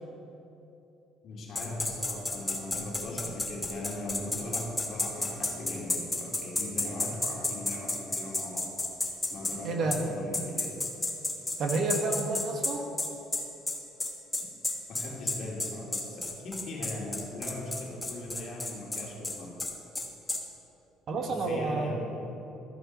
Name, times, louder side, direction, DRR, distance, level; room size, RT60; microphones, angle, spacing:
voice 1, 1.2-8.7 9.3-10.7 14.9-19.6 21.3-22.2, left 1 dB, 55° left, -3 dB, 2.5 m, -39 dB
sound 1, 1.6-9.6 9.9-10.0 10.3-20.4, left 2 dB, 15° left, 1.2 m, -31 dB
voice 2, 9.6-10.0 11.6-12.8 21.1-22.0, right 3 dB, 50° right, 2 dB, 1.2 m, -29 dB
14.0 x 5.0 x 5.1 m, 3.0 s
cardioid pair, 95°, 0 cm